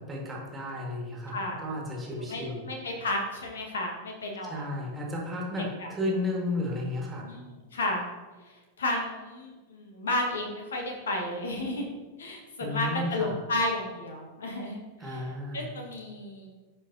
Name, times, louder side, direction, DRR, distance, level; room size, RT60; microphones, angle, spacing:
voice 1, 0.0-2.7 4.4-7.2 12.6-13.4 15.0-15.7, left 1 dB, 15° right, -2 dB, 1.8 m, -33 dB
voice 2, 1.3-1.7 2.2-4.6 5.8-5.9 7.2-8.1 8.8-11.9 12.2-16.5, left 2 dB, 65° left, 1 dB, 1.5 m, -32 dB
12.0 x 4.9 x 2.7 m, 1.3 s
figure-of-eight pair, 90°, 0 cm